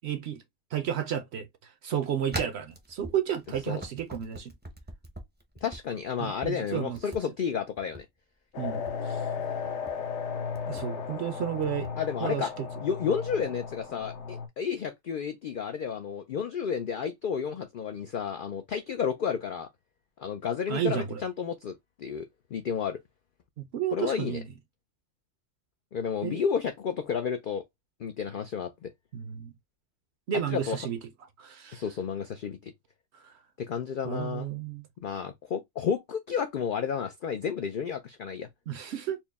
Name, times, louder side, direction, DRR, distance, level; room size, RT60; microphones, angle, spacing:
voice 1, 0.0-0.4 0.7-4.5 6.2-7.0 8.6-9.2 10.7-11.9 12.2-12.7 20.7-21.2 23.6-24.5 26.2-26.4 29.1-29.5 30.3-31.0 31.4-31.8 33.1-33.3 34.0-34.8 38.7-39.2, right 9 dB, 65° right, 0.7 m, -32 dB
sound 1, 2.3-5.8 6.2-6.5 6.9-7.2 7.8-8.0 8.7-9.0 9.6-9.9 10.5-10.9 11.6-11.9, right 1 dB, 10° right, 0.5 m, -41 dB
voice 2, 5.6-8.1 12.0-12.5 12.8-19.7 20.2-23.0 23.9-24.4 25.9-27.6 28.0-28.9 30.5-30.8 31.7-32.7 33.6-34.5 35.0-38.5, left 7 dB, 80° left, 0.4 m, -31 dB
sound 2, 8.5-14.5, left 6 dB, 60° left, 1.0 m, -35 dB
4.5 x 2.1 x 3.4 m
omnidirectional pair, 1.4 m